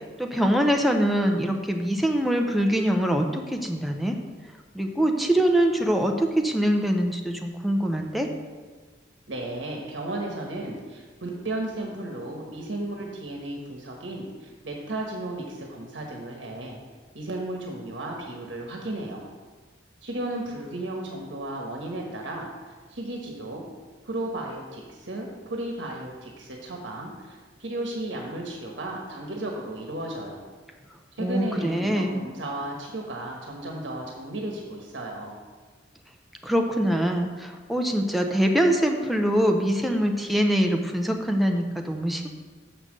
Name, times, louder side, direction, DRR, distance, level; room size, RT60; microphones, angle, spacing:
voice 1, 0.2-4.2 4.7-8.3 31.2-32.2 36.4-42.3, equal, ahead, 2 dB, 0.7 m, -23 dB
voice 2, 9.3-16.8 17.1-19.3 20.0-23.6 24.0-30.5 31.2-35.4, right 1 dB, 75° right, 0 dB, 1.2 m, -34 dB
6.7 x 5.7 x 6.4 m, 1.4 s
head